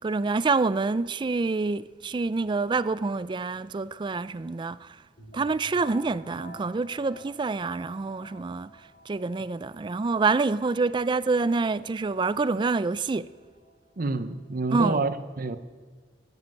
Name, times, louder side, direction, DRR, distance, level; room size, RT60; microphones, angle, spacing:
voice 1, 0.0-4.8 5.3-8.7 9.1-13.3 14.7-15.0, right 3 dB, 25° right, 0.3 m, -27 dB
sound 1, 5.2-14.7, equal, 50° left, 2.6 m, -52 dB
voice 2, 14.0-15.6, right 3 dB, 50° right, 0.7 m, -28 dB
13.5 x 7.6 x 9.1 m
head